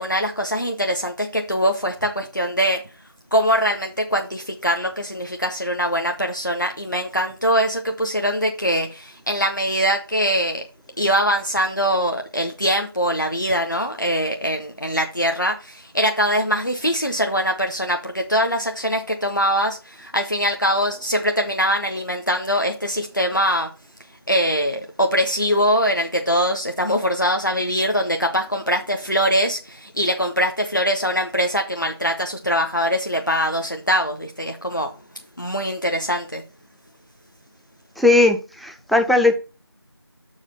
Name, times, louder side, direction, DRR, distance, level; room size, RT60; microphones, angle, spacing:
voice 1, 0.0-2.8 3.3-10.6 11.0-23.7 24.3-34.9 35.4-36.4, equal, 50° left, 3 dB, 0.8 m, -22 dB
voice 2, 38.0-39.3, left 2 dB, ahead, 5 dB, 0.4 m, -17 dB
6.7 x 4.9 x 5.5 m, 0.33 s
figure-of-eight pair, 180°, 14 cm